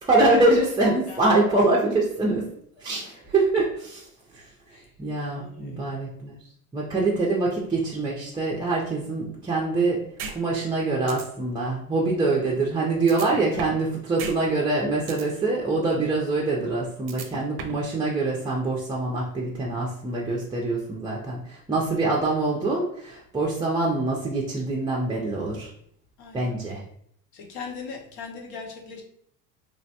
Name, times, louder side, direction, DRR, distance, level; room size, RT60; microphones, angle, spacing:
voice 1, 0.0-2.5 2.8-4.0 4.3-4.4 5.0-6.4 6.7-10.0 10.3-25.7 26.3-26.8, right 2 dB, 10° right, -4 dB, 0.5 m, -24 dB
voice 2, 0.8-1.2 2.9-3.0 4.7-4.9 5.3-5.8 13.3-13.6 26.2-26.5 27.3-29.0, left 5 dB, 55° left, 1 dB, 0.9 m, -40 dB
sound 1, 10.2-10.3 10.7-10.8 11.1-11.2 13.1-13.8 14.2-14.3 14.7-15.2 17.1-17.8, right 5 dB, 55° right, 0.6 m, -35 dB
3.2 x 2.1 x 2.8 m, 0.67 s
hypercardioid pair, 85°, 42 cm